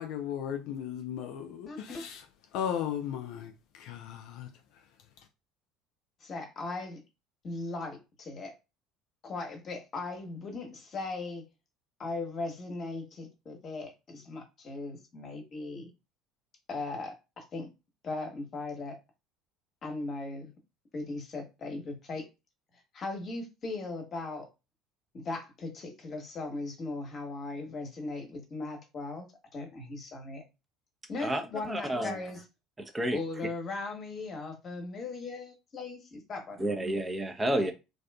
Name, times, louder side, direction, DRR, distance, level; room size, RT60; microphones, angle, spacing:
voice 1, 0.0-2.2 2.5-3.4 4.4-4.5, left 9 dB, 65° left, 0.3 m, -35 dB
voice 2, 1.7-2.1 6.2-7.0 7.4-8.5 9.2-11.4 12.0-15.9 16.7-17.7 18.0-19.0 19.8-20.5 20.9-22.3 22.9-24.5 25.1-29.3 29.5-30.4 31.1-32.4 33.1-36.7 37.5-37.7, left 3 dB, 40° left, 1.0 m, -38 dB
voice 3, 31.7-32.2 32.8-33.2 36.6-37.7, right 1 dB, 20° right, 0.6 m, -30 dB
2.6 x 2.3 x 2.2 m
hypercardioid pair, 65°, 0 cm